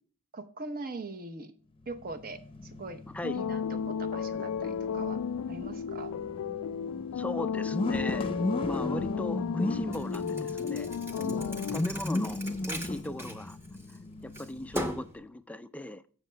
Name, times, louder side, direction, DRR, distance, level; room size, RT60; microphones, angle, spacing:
voice 1, 0.3-1.5 1.9-3.0 3.3-5.2 5.5-6.1, right 2 dB, 40° right, 0.9 m, -41 dB
sound 1, 1.8-15.2, left 2 dB, 25° left, 0.7 m, -37 dB
sound 2, 3.2-11.8, left 7 dB, 85° left, 0.3 m, -33 dB
voice 2, 7.2-8.3 8.7-10.9 11.1-12.4 12.7-13.6 14.2-16.0, left 1 dB, 5° left, 0.3 m, -38 dB
Thump thud, 9.9-14.0 14.3-15.2, equal, 10° right, 0.9 m, -39 dB
15.0 x 6.4 x 2.2 m
head